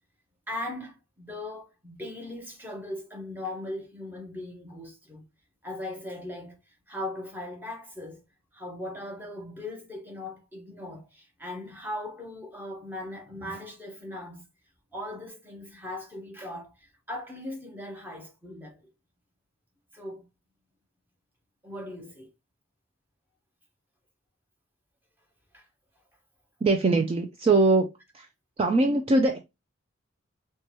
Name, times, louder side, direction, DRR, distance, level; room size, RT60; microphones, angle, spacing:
voice 1, 0.5-5.3 5.6-8.2 8.5-14.5 14.9-18.9 19.9-20.3 21.6-22.3 25.5-25.7, left 1 dB, 10° right, 0.8 m, -39 dB
voice 2, 26.6-27.9 28.1-28.3 28.6-29.4, right 3 dB, 30° right, 0.3 m, -22 dB
4.5 x 2.2 x 2.9 m
head